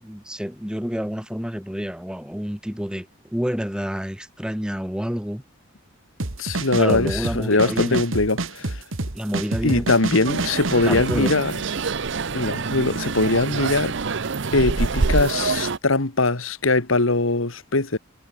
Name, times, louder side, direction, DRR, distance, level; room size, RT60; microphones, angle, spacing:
voice 1, 0.0-5.4 6.8-8.1 9.1-9.9 10.8-11.3, equal, 5° right, 2.1 m, -28 dB
sound 1, 6.2-11.4, right 2 dB, 85° right, 2.0 m, -28 dB
voice 2, 6.4-8.8 9.6-11.5 12.3-13.9 14.5-18.0, left 2 dB, 90° left, 2.1 m, -21 dB
sound 2, 10.3-15.8, right 4 dB, 65° right, 0.8 m, -26 dB
head